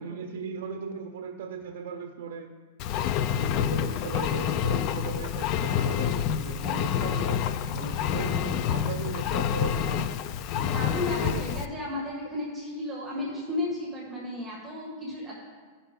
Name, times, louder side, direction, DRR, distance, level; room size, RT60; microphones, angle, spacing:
voice 1, 0.0-2.5 3.2-10.2 11.2-11.4, right 6 dB, 70° right, 5 dB, 0.6 m, -38 dB
Engine, 2.8-11.7, left 9 dB, 35° left, 0.3 m, -28 dB
voice 2, 10.5-15.4, left 1 dB, 10° right, -4 dB, 1.6 m, -33 dB
14.5 x 5.5 x 3.6 m, 1.5 s
supercardioid pair, 165°, 0 cm